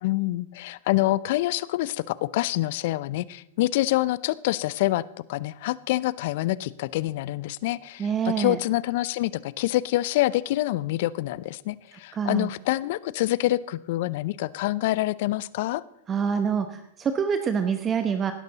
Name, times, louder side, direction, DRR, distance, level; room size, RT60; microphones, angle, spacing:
voice 1, 0.0-5.0 5.3-15.8, left 16 dB, 60° left, 20 dB, 0.5 m, -26 dB
voice 2, 8.0-8.6 12.1-12.5 16.1-18.3, right 7 dB, 25° right, 9 dB, 1.0 m, -26 dB
17.0 x 11.5 x 4.0 m, 0.85 s
hypercardioid pair, 100°, 0 cm